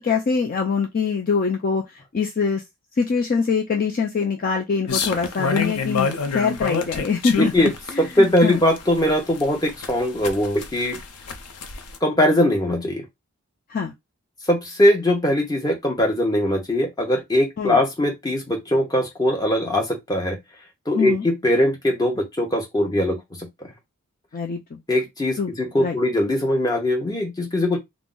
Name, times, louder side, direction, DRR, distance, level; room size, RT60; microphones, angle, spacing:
voice 1, 0.0-2.6 3.0-6.1 6.3-8.6 13.7-13.9 17.6-17.8 20.9-21.3 24.3-24.8 25.4-25.5 25.8-26.0, left 5 dB, 40° left, 0.4 m, -24 dB
sound 1, 4.9-12.0, left 5 dB, 90° left, 0.6 m, -27 dB
voice 2, 7.4-7.7 8.0-11.0 12.0-13.0 14.5-20.4 20.9-23.2 23.6-23.7 24.9-27.8, left 1 dB, 15° left, 0.7 m, -21 dB
2.4 x 2.0 x 3.7 m
head